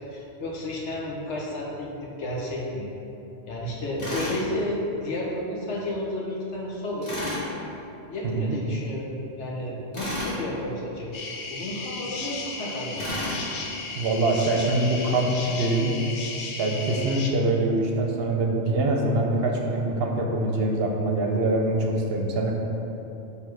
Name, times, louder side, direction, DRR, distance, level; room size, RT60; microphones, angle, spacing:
voice 1, 0.0-2.9 3.5-7.3 8.1-13.2, left 1 dB, 80° left, -3 dB, 1.3 m, -32 dB
Tools, 4.0-4.4 7.0-7.4 9.9-10.4 13.0-13.4, left 1 dB, 35° left, 1.7 m, -31 dB
sound 1, 11.1-17.3, left 3 dB, 55° left, 0.7 m, -35 dB
voice 2, 14.0-15.9 16.5-22.5, right 2 dB, 65° right, 1 dB, 0.9 m, -24 dB
6.9 x 3.4 x 4.6 m, 3.0 s
omnidirectional pair, 1.2 m